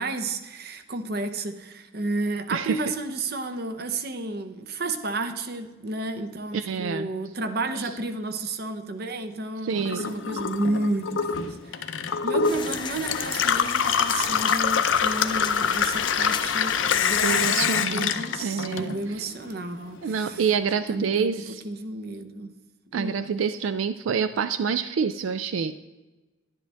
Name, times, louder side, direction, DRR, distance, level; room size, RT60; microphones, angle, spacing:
voice 1, 0.0-20.4 20.9-22.5 22.9-23.3, right 2 dB, 50° right, 8 dB, 0.8 m, -32 dB
voice 2, 6.5-7.1 9.6-10.1 17.2-18.1 18.4-19.0 20.0-21.6 22.9-25.7, right 6 dB, 85° right, 11 dB, 0.4 m, -27 dB
Gurgling / Water tap faucet / Sink (filling or washing), 9.8-19.3 19.6-20.5, left 6 dB, 75° left, 0.6 m, -25 dB
sound 1, 12.4-17.5, left 7 dB, 25° left, 0.3 m, -36 dB
11.0 x 10.5 x 3.4 m, 1.2 s
head